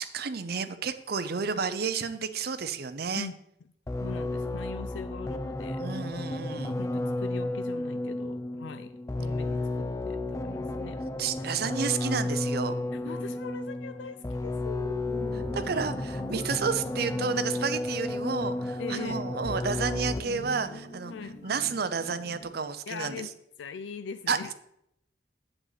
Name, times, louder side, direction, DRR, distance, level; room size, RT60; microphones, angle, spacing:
voice 1, 0.0-3.3 5.8-6.8 11.2-12.8 15.3-23.3 24.3-24.5, right 5 dB, 55° right, 11 dB, 0.6 m, -31 dB
sound 1, 3.9-20.5, left 2 dB, 15° left, 0.4 m, -32 dB
voice 2, 4.0-5.8 6.6-11.0 11.4-11.5 12.9-15.0 18.8-19.3 21.1-21.4 22.9-23.3 23.6-24.5, left 6 dB, 85° left, 10 dB, 0.4 m, -41 dB
sound 2, 15.0-22.6, left 2 dB, 45° left, 2.1 m, -44 dB
7.8 x 7.6 x 4.0 m, 0.76 s
head